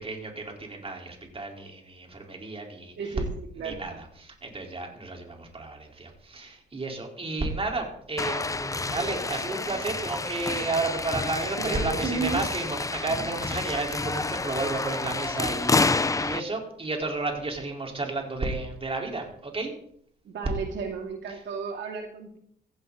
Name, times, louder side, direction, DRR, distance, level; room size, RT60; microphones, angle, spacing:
voice 1, 0.0-3.1 3.6-19.7 21.3-21.4, right 3 dB, 30° right, 1 dB, 4.5 m, -32 dB
voice 2, 3.0-3.9 11.5-12.5 13.2-13.3 20.2-22.4, right 5 dB, 65° right, 2 dB, 2.7 m, -33 dB
sound 1, 8.2-16.4, left 3 dB, 15° left, 0.7 m, -29 dB
16.0 x 16.0 x 4.2 m, 0.68 s
cardioid pair, 90°, 20 cm